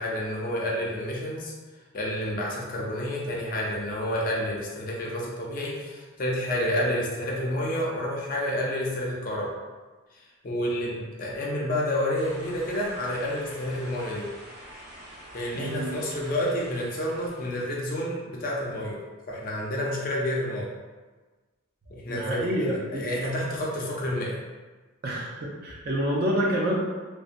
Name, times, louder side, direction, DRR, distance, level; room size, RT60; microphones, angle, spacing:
voice 1, 0.0-1.5 1.9-9.5 10.1-14.3 15.3-19.0 19.3-20.7 21.9-24.3, left 1 dB, 45° left, -3 dB, 0.4 m, -29 dB
sound 1, 12.1-17.9, right 1 dB, 70° right, 1.2 m, -46 dB
voice 2, 15.5-15.9 22.1-23.1 25.0-26.7, equal, 50° right, -2 dB, 0.4 m, -27 dB
2.6 x 2.1 x 2.4 m, 1.3 s
head